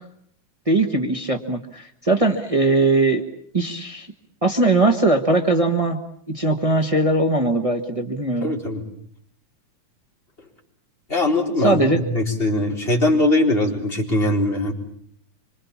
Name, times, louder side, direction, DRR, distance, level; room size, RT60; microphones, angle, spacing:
voice 1, 0.7-3.2 3.5-4.1 4.4-6.0 6.3-8.5 11.6-12.0, right 2 dB, 50° right, 4 dB, 0.4 m, -20 dB
voice 2, 8.4-8.8 11.1-14.7, left 1 dB, 20° left, -1 dB, 4.4 m, -21 dB
26.0 x 25.5 x 7.3 m, 0.66 s
omnidirectional pair, 3.4 m